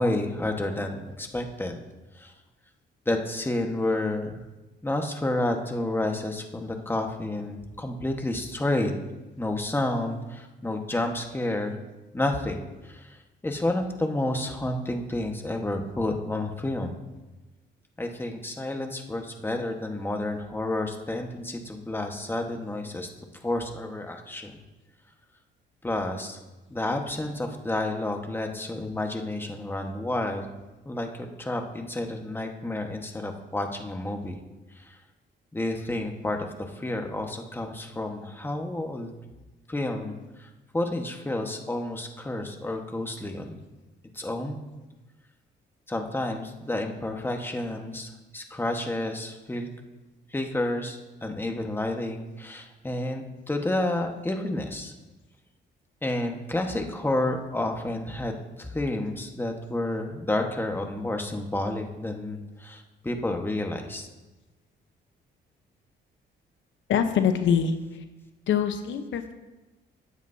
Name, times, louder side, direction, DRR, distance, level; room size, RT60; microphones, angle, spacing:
voice 1, 0.0-1.8 2.2-2.3 3.0-4.4 4.8-8.9 9.4-11.8 12.1-17.0 18.0-23.1 23.4-24.5 25.8-26.4 26.7-30.5 30.8-34.4 34.7-35.0 35.5-39.1 39.7-43.6 44.1-44.6 45.9-49.7 50.3-54.9 56.0-64.1, left 1 dB, 10° left, 3 dB, 1.3 m, -30 dB
voice 2, 66.9-68.0 68.5-69.3, left 7 dB, 75° left, 7 dB, 0.9 m, -24 dB
17.0 x 9.3 x 2.7 m, 1.1 s
cardioid pair, 90°, 20 cm